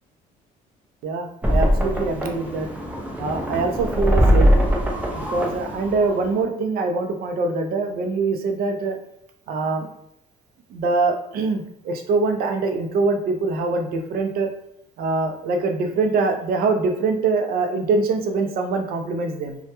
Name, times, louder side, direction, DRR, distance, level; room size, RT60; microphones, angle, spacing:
voice 1, 1.0-2.7 3.2-4.5 5.2-9.0 9.5-9.9 10.7-14.5 15.0-19.6, right 3 dB, 60° right, 5 dB, 0.4 m, -23 dB
sound 1, 1.4-6.4, equal, 10° right, 0.5 m, -21 dB
2.2 x 2.1 x 2.8 m, 0.74 s
cardioid pair, 110°, 17 cm